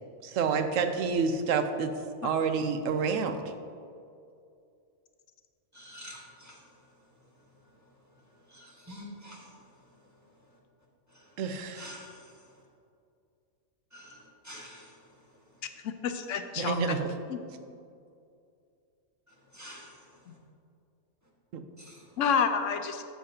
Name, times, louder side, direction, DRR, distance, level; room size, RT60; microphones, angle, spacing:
voice 1, 0.2-1.9 2.2-3.4 11.4-11.9 16.6-17.1 21.5-21.6, right 5 dB, 80° right, 7 dB, 1.0 m, -28 dB
voice 2, 5.7-6.9 7.8-7.9 8.5-9.6 11.1-11.3 11.7-12.5 13.9-15.3 19.3-20.3 21.8-22.2, equal, 15° right, -3 dB, 1.4 m, -49 dB
voice 3, 15.8-17.0 17.3-17.4 20.3-20.4 22.2-23.0, left 6 dB, 75° left, 8 dB, 0.9 m, -29 dB
12.5 x 7.4 x 2.8 m, 2.4 s
omnidirectional pair, 1.3 m